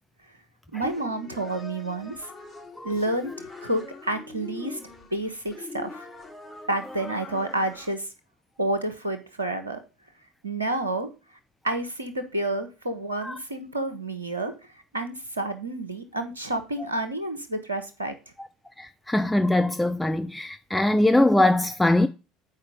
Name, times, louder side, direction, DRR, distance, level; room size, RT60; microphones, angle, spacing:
voice 1, 0.7-2.3 2.8-4.8 5.1-6.1 6.7-8.1 8.6-9.8 10.4-11.1 11.6-14.5 14.9-18.1, right 1 dB, 85° right, 1.1 m, -29 dB
sound 1, 0.8-7.9, left 3 dB, 30° left, 3.7 m, -42 dB
voice 2, 18.8-22.1, left 1 dB, 10° left, 0.5 m, -22 dB
8.0 x 4.9 x 5.5 m
figure-of-eight pair, 65°, 0 cm